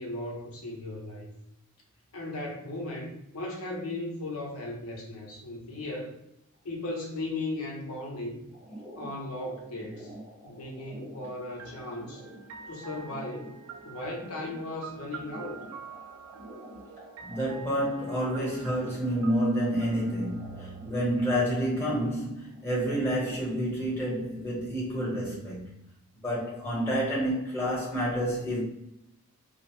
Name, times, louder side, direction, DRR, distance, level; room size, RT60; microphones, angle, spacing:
voice 1, 0.0-1.3 2.1-6.2 6.6-8.4 9.0-10.1 10.4-12.2 12.7-13.5 13.8-15.6, left 2 dB, 80° left, -1 dB, 0.6 m, -36 dB
sound 1, 8.5-23.4, right 1 dB, 20° right, 0.6 m, -48 dB
sound 2, 11.6-21.4, right 6 dB, 75° right, 0.3 m, -47 dB
voice 2, 17.2-25.7 26.2-28.6, equal, 10° left, -6 dB, 0.9 m, -29 dB
2.4 x 2.0 x 2.9 m, 0.79 s
head